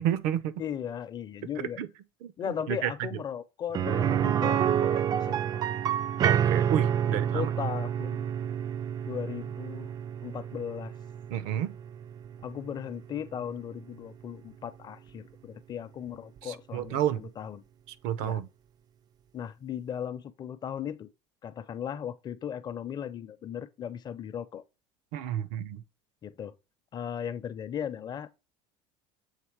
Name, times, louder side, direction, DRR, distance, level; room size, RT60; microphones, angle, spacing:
voice 1, 0.0-0.6 1.6-1.9 2.2-3.2 6.2-7.5 11.3-11.7 16.4-17.3 18.0-18.5 25.1-25.8, right 11 dB, 75° right, 0.7 m, -31 dB
voice 2, 0.6-1.8 2.4-5.6 7.1-8.3 9.0-9.9 10.2-10.9 12.4-17.6 18.2-18.4 19.3-21.1 21.4-24.6 26.2-26.5 26.9-28.4, left 9 dB, 30° left, 0.6 m, -37 dB
sound 1, 3.7-13.5 13.8-13.9 16.4-16.5, right 9 dB, 30° right, 0.3 m, -29 dB
7.4 x 3.3 x 4.6 m
cardioid pair, 125°, 13 cm